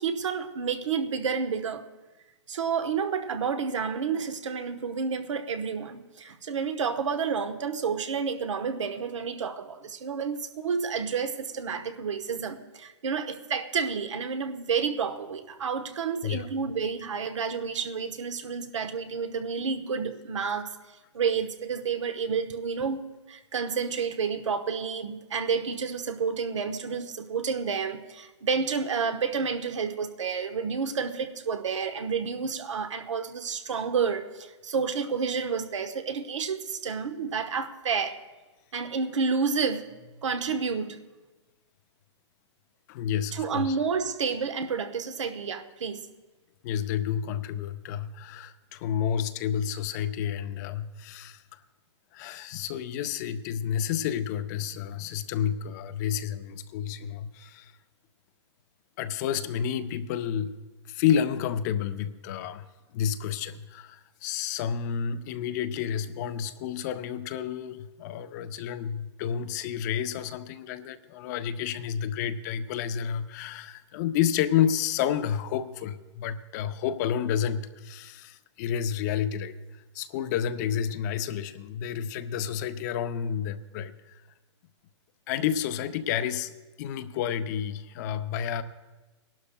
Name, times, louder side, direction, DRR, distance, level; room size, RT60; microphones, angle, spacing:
voice 1, 0.0-1.8 2.5-20.7 21.1-23.0 23.3-38.2 38.7-39.9 40.2-41.0 43.3-46.0, right 6 dB, 90° right, 8 dB, 1.0 m, -30 dB
voice 2, 42.9-43.8 46.6-51.4 52.1-57.7 59.0-60.6 60.9-62.6 62.9-79.6 79.9-84.2 85.3-86.5 86.8-88.6, left 9 dB, 35° left, 11 dB, 0.5 m, -30 dB
24.0 x 12.0 x 2.2 m, 1.2 s
hypercardioid pair, 145°, 15 cm